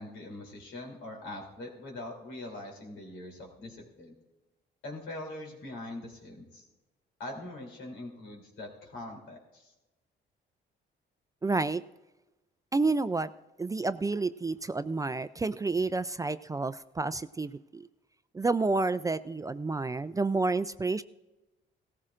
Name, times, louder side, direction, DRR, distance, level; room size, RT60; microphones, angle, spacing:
voice 1, 0.0-4.1 4.8-6.6 7.2-9.7, left 1 dB, 85° left, 0 dB, 3.2 m, -42 dB
voice 2, 11.4-11.8 12.7-13.3 13.6-17.9 18.3-21.0, right 3 dB, 15° right, 14 dB, 0.4 m, -29 dB
17.0 x 14.5 x 2.5 m, 1.1 s
cardioid pair, 90°, 20 cm